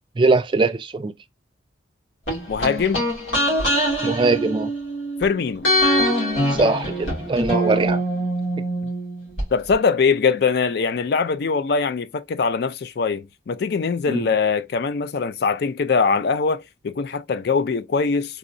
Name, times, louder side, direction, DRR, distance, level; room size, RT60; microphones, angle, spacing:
voice 1, 0.2-1.1 4.0-4.7 6.5-8.0 14.1-14.2, right 3 dB, 25° right, 0.3 m, -21 dB
sound 1, 2.3-5.2 5.6-9.4 9.7-9.8, equal, 85° left, 2.1 m, -23 dB
voice 2, 2.5-3.1 5.2-5.7 9.5-18.4, left 5 dB, 55° left, 0.4 m, -22 dB
3.7 x 3.0 x 2.6 m
head